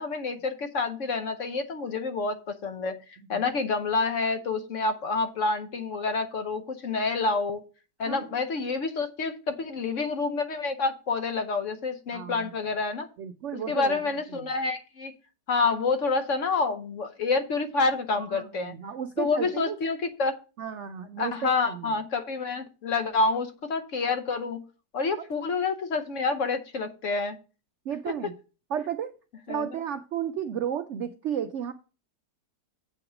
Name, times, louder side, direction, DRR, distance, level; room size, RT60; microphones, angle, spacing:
voice 1, 0.0-3.0 3.3-7.6 8.0-13.1 13.5-15.1 15.5-18.7 19.2-20.4 21.2-24.6 24.9-27.4 29.5-29.7, left 4 dB, 55° left, 8 dB, 1.0 m, -28 dB
voice 2, 12.1-12.5 13.2-14.5 18.3-19.8 20.6-21.9 27.9-28.3 28.7-29.1 29.5-31.7, right 9 dB, 70° right, 9 dB, 0.7 m, -33 dB
7.9 x 5.8 x 4.9 m, 0.34 s
omnidirectional pair, 1.7 m